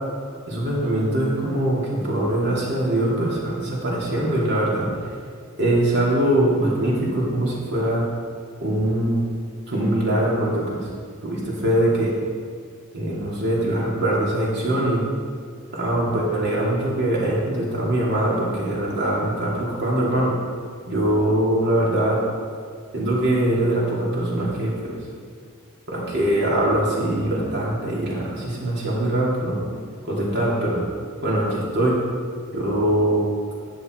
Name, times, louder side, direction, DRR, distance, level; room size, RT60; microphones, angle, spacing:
voice 1, 0.5-5.1 5.6-8.0 8.6-9.2 9.7-10.8 11.2-12.1 12.9-15.0 15.7-20.3 20.9-22.2 22.9-24.9 25.9-29.6 30.0-30.8 31.2-32.0 32.5-33.2, right 1 dB, 55° right, -5 dB, 3.0 m, -22 dB
10.5 x 8.8 x 4.6 m, 2.2 s
head